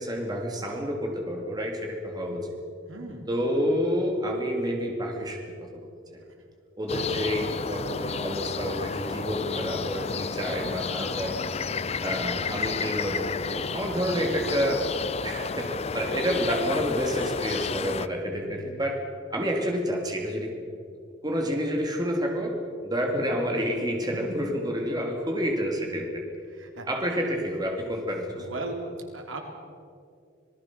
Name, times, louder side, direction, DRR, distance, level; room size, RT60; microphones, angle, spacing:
voice 1, 0.0-2.5 3.3-5.9 6.1-6.2 6.8-11.4 12.0-14.8 15.2-19.0 19.3-20.5 21.2-22.5 22.8-26.2 26.8-28.7, equal, 20° right, 1 dB, 2.7 m, -29 dB
voice 2, 2.9-3.2 23.2-23.3 24.1-24.4 26.6-26.9 28.4-28.8 29.1-29.4, right 2 dB, 85° right, 2 dB, 3.7 m, -37 dB
sound 1, 6.9-18.1, left 5 dB, 30° left, 0.5 m, -31 dB
26.5 x 19.0 x 6.2 m, 2.3 s
head